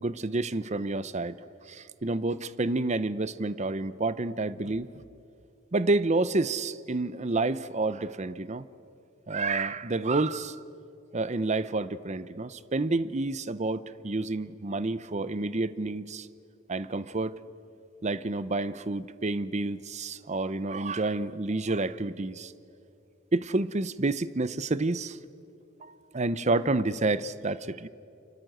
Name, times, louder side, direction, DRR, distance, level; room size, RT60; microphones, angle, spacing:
voice 1, 0.0-1.4 1.7-4.9 5.7-8.7 9.3-10.6 11.1-16.3 16.7-17.3 18.0-22.5 23.3-25.2 25.8-27.9, right 2 dB, 35° right, 16 dB, 0.7 m, -29 dB
29.5 x 25.5 x 7.9 m, 2.6 s
head